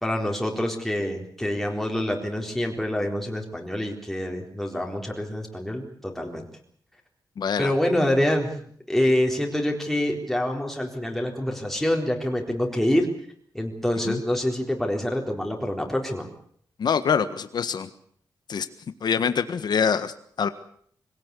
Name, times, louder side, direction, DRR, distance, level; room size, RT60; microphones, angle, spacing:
voice 1, 0.0-6.5 7.6-8.5 8.9-13.1 13.5-16.3, left 1 dB, 5° left, 1 dB, 4.1 m, -26 dB
voice 2, 7.4-7.7 14.0-14.2 16.8-17.9 18.5-18.7 19.0-20.5, left 7 dB, 70° left, 11 dB, 1.5 m, -25 dB
24.0 x 17.5 x 8.4 m, 0.63 s
wide cardioid pair, 110°, 8 cm